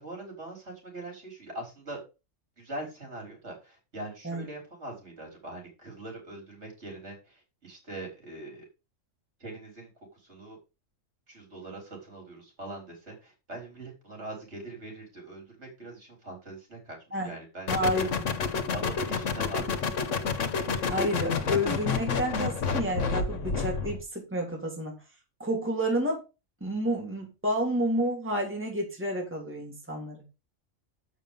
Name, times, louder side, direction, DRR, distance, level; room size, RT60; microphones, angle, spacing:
voice 1, 0.0-2.0 2.6-8.6 9.4-10.6 11.3-18.1 18.7-20.0, right 2 dB, 65° right, 2 dB, 4.2 m, -42 dB
sound 1, 17.7-24.0, left 5 dB, 90° left, 1.4 m, -29 dB
voice 2, 17.7-18.1 20.9-24.9 25.4-26.2 26.6-30.2, equal, 10° right, 0 dB, 2.4 m, -30 dB
7.3 x 6.2 x 5.3 m, 0.28 s
omnidirectional pair, 1.3 m